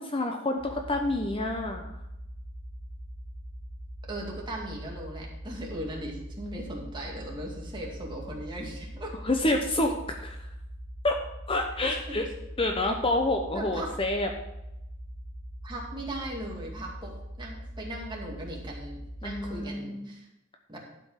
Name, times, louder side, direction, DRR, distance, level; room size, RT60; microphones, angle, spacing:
voice 1, 0.0-1.9 9.2-10.4 11.0-11.1 11.5-12.3 12.6-14.3 19.2-20.1, left 2 dB, 25° left, 3 dB, 0.8 m, -28 dB
sound 1, 0.6-19.6, equal, 90° left, 2.6 m, -42 dB
voice 2, 4.0-9.1 11.9-12.2 13.5-13.9 15.6-20.3 20.7-20.8, right 1 dB, 25° right, -1 dB, 2.1 m, -38 dB
12.0 x 5.2 x 5.8 m, 0.88 s
head